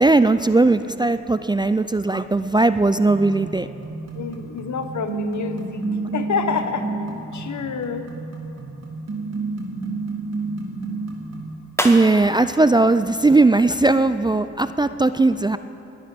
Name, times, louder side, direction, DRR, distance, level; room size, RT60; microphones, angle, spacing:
voice 1, 0.0-3.7 11.8-15.6, right 2 dB, 15° right, 12 dB, 0.4 m, -18 dB
sound 1, 3.1-11.6, right 3 dB, 55° right, 2.3 m, -30 dB
voice 2, 3.8-5.8 6.1-6.9 7.3-8.1, left 6 dB, 65° left, 8 dB, 1.1 m, -28 dB
sound 2, 11.7-14.1, left 1 dB, 10° left, 1.5 m, -35 dB
21.0 x 9.1 x 5.2 m, 2.9 s
cardioid pair, 55°, 31 cm